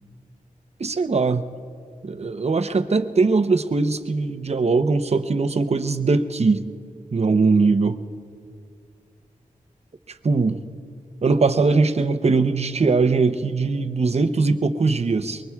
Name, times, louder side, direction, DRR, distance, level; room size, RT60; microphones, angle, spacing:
voice 1, 0.8-1.5 2.0-6.7 7.1-8.0 10.2-10.6 11.2-15.4, right 4 dB, 50° right, 9 dB, 0.7 m, -20 dB
24.0 x 22.0 x 2.4 m, 2.3 s
wide cardioid pair, 70°, 14 cm